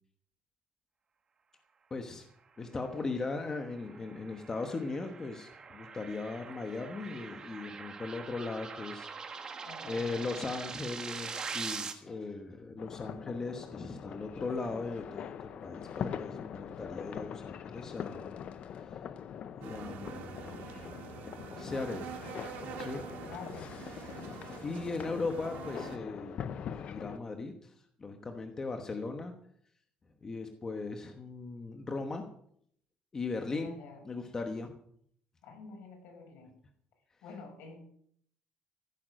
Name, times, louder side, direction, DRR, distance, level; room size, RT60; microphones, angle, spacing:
voice 1, 1.9-2.3 2.6-18.3 18.8-19.0 19.5-20.9 21.6-22.1 22.8-23.1 24.6-27.7 28.0-29.3 30.2-32.2 33.1-33.7 34.0-34.7, left 3 dB, 20° left, 5 dB, 1.1 m, -38 dB
sound 1, 3.1-11.9, right 5 dB, 25° right, 1.3 m, -43 dB
voice 2, 9.6-10.4 23.3-23.7 24.1-24.4 33.5-34.0 35.4-36.5 37.2-37.8, left 4 dB, 70° left, 1 dB, 7.0 m, -48 dB
sound 2, 12.8-27.2, left 8 dB, 40° left, 0.7 m, -43 dB
sound 3, 19.6-26.0, right 8 dB, 70° right, 1.7 m, -45 dB
15.5 x 9.7 x 6.5 m, 0.66 s
cardioid pair, 175°, 3 cm